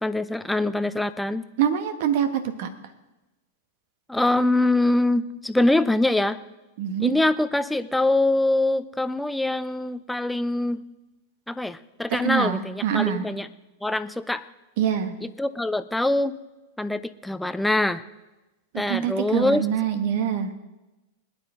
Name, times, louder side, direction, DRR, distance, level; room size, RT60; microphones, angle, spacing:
voice 1, 0.0-1.4 4.1-6.4 7.0-10.8 11.5-13.5 13.8-14.5 15.2-16.3 16.8-18.0 18.7-19.7, left 2 dB, 5° left, 12 dB, 0.6 m, -24 dB
voice 2, 1.6-2.7 6.8-7.2 12.1-13.2 14.8-15.1 18.7-20.5, right 9 dB, 60° right, 9 dB, 1.5 m, -25 dB
21.5 x 10.0 x 3.8 m, 1.1 s
hypercardioid pair, 100°, 0 cm